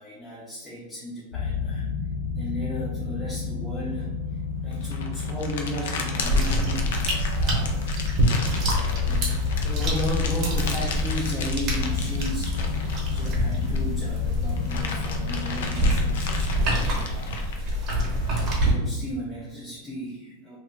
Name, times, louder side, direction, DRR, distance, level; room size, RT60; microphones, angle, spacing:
voice 1, 0.0-1.9 2.3-7.8 8.4-17.3 17.9-20.6, equal, 5° left, -6 dB, 0.4 m, -35 dB
sound 1, 1.3-16.7, left 5 dB, 40° left, 1.0 m, -30 dB
sound 2, 4.7-14.0 14.3-18.5, left 4 dB, 70° left, 0.5 m, -36 dB
sound 3, 6.2-18.7, equal, 25° right, 0.9 m, -27 dB
2.6 x 2.6 x 3.3 m, 1.1 s
supercardioid pair, 170°, 0 cm